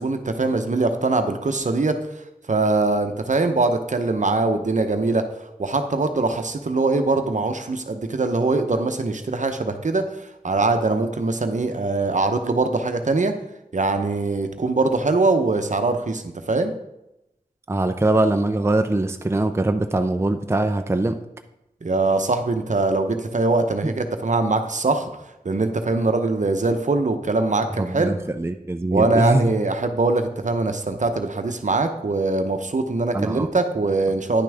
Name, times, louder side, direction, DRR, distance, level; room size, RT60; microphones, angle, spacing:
voice 1, 0.0-2.0 2.5-5.2 5.6-13.3 13.7-16.2 16.5-16.7 21.8-25.1 25.4-28.2 28.9-34.4, right 3 dB, 55° right, 7 dB, 0.8 m, -22 dB
voice 2, 17.7-21.2 23.8-23.9 27.8-29.5 33.1-33.5, right 2 dB, 15° right, 7 dB, 0.5 m, -22 dB
9.9 x 6.0 x 3.5 m, 0.89 s
cardioid pair, 45°, 15 cm